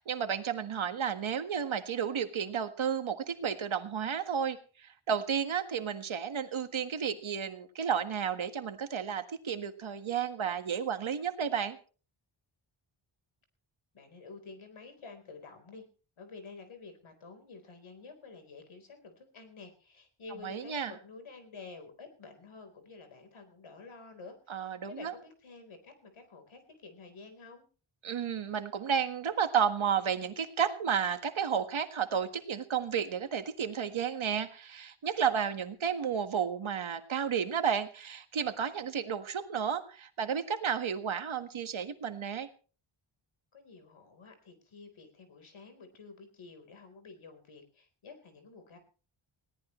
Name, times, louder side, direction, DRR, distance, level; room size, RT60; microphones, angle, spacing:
voice 1, 0.0-11.8 20.4-20.9 24.5-25.1 28.0-42.5, right 7 dB, 70° right, 8 dB, 1.7 m, -32 dB
voice 2, 13.9-15.8 16.2-27.6 43.5-48.8, left 4 dB, 70° left, 7 dB, 4.3 m, -50 dB
20.0 x 17.5 x 3.2 m, 0.38 s
wide cardioid pair, 155°, 50 cm